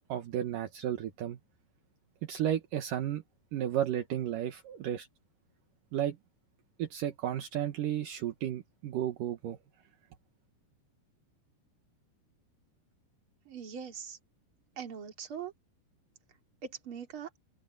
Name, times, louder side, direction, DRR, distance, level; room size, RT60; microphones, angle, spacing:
voice 1, 0.1-1.4 2.2-3.2 3.5-5.1 5.9-6.2 6.8-9.6, right 11 dB, 75° right, 2.0 m, -33 dB
voice 2, 13.5-14.2 14.8-15.5 16.6-17.3, right 7 dB, 35° right, 2.6 m, -41 dB
omnidirectional pair, 5.8 m